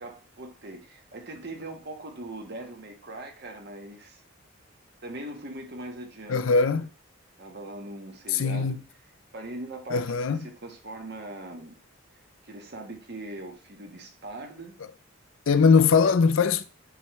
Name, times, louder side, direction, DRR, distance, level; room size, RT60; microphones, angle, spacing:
voice 1, 0.0-4.2 5.0-6.9 7.4-8.8 9.3-11.7 12.4-14.8, right 1 dB, 50° right, 1.3 m, -41 dB
voice 2, 6.3-6.9 8.3-8.8 9.9-10.4 15.5-16.7, left 5 dB, 70° left, 0.5 m, -21 dB
9.7 x 3.4 x 3.1 m
head